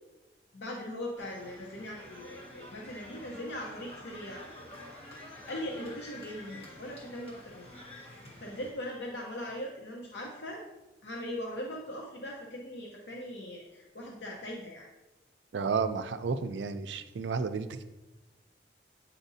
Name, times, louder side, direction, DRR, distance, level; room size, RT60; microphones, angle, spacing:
voice 1, 0.5-4.4 5.5-7.6 8.4-10.6 11.0-14.9, left 1 dB, 80° left, -1 dB, 0.8 m, -40 dB
sound 1, 1.2-8.7, left 1 dB, 35° left, 1.4 m, -49 dB
voice 2, 15.5-17.8, right 5 dB, 80° right, 10 dB, 0.4 m, -32 dB
8.9 x 4.2 x 2.7 m, 1.0 s
head